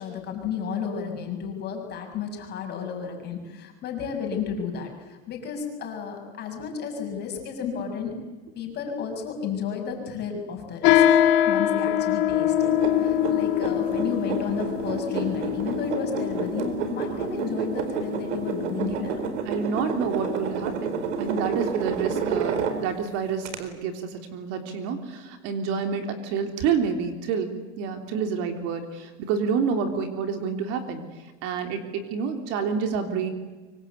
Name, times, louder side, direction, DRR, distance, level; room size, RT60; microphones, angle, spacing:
voice 1, 0.0-8.1 8.5-11.0 11.5-19.3, left 6 dB, 30° left, 3 dB, 6.6 m, -32 dB
sound 1, 10.8-18.6, left 11 dB, 50° left, 3.0 m, -23 dB
sound 2, 12.6-23.1 23.5-23.6, right 5 dB, 75° right, 4.5 m, -30 dB
voice 2, 19.4-27.5 27.8-31.0 31.4-33.3, right 6 dB, 45° right, 6 dB, 3.4 m, -28 dB
25.5 x 24.5 x 8.3 m, 1.3 s
supercardioid pair, 150°, 35 cm